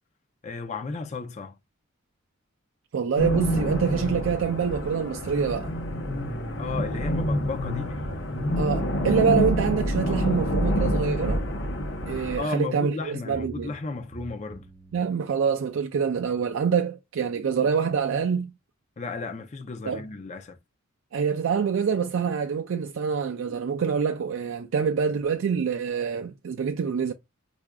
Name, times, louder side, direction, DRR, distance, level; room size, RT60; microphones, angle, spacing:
voice 1, 0.4-1.6 6.6-8.0 12.4-14.7 19.0-20.6, left 3 dB, 35° left, 0.5 m, -34 dB
voice 2, 2.9-5.7 8.6-11.4 12.1-13.7 14.9-18.5 19.8-20.0 21.1-27.1, right 6 dB, 70° right, 0.4 m, -26 dB
sound 1, 3.2-12.4, equal, 65° left, 0.8 m, -27 dB
sound 2, 7.9-8.8 11.0-11.1 11.4-12.6 13.3-15.0, right 2 dB, 15° right, 0.9 m, -45 dB
4.7 x 2.5 x 2.2 m
head